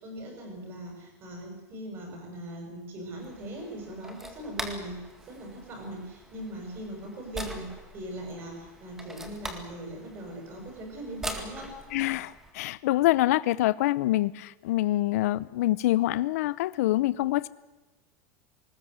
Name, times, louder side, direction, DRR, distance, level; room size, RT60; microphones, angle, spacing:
voice 1, 0.0-5.0 5.2-11.7, right 1 dB, 25° right, 2 dB, 6.9 m, -40 dB
sound 1, 3.2-12.5, right 1 dB, 5° right, 2.0 m, -42 dB
voice 2, 11.9-17.5, left 16 dB, 70° left, 18 dB, 0.6 m, -25 dB
20.5 x 20.0 x 8.1 m, 1.1 s
supercardioid pair, 180°, 8 cm